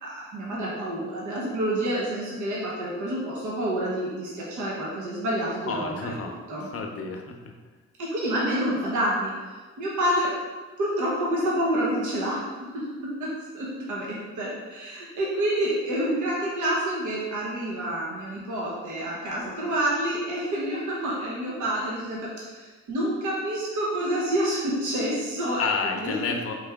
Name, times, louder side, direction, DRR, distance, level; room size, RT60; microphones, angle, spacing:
voice 1, 0.0-6.1 6.5-6.7 8.0-10.3 10.8-25.7 26.0-26.4, right 1 dB, 75° right, -5 dB, 1.1 m, -28 dB
voice 2, 5.6-7.4 25.6-26.5, left 4 dB, 50° left, 3 dB, 0.7 m, -30 dB
4.4 x 3.3 x 3.5 m, 1.3 s
cardioid pair, 90°, 30 cm